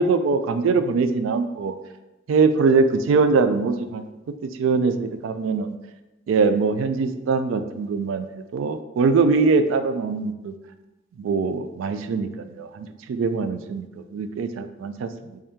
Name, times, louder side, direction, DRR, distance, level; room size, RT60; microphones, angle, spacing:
voice 1, 0.0-1.7 2.3-4.1 4.4-5.7 6.3-10.5 11.2-15.4, right 4 dB, 85° right, 9 dB, 0.3 m, -22 dB
3.5 x 3.3 x 2.8 m, 1.0 s
head